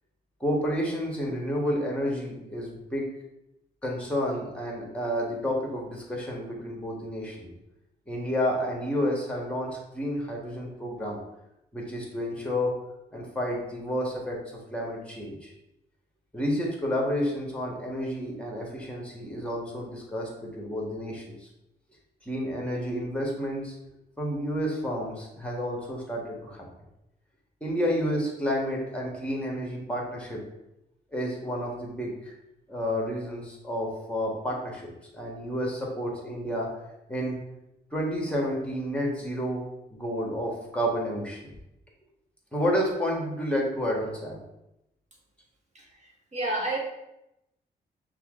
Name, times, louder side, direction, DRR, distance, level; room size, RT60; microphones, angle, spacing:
voice 1, 0.4-3.1 3.8-7.5 8.1-11.2 11.7-12.8 13.1-15.5 16.3-21.5 22.2-23.8 24.2-26.6 27.6-30.4 31.1-32.1 32.7-36.7 37.1-37.4 37.9-41.5 42.5-44.4, equal, 5° left, -2 dB, 1.5 m, -30 dB
voice 2, 45.7-46.8, right 2 dB, 40° right, -1 dB, 1.4 m, -31 dB
5.7 x 2.4 x 3.7 m, 0.88 s
cardioid pair, 75°, 18 cm